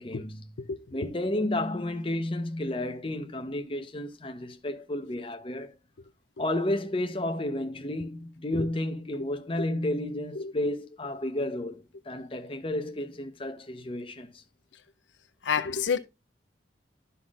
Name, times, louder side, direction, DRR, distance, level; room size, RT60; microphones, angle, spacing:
voice 1, 0.0-0.5 0.9-5.7 6.4-14.4, left 1 dB, 30° left, 0.9 m, -32 dB
voice 2, 0.7-1.1 8.5-8.7 10.4-10.5 15.4-16.0, left 6 dB, 75° left, 0.6 m, -29 dB
12.0 x 5.7 x 2.4 m
head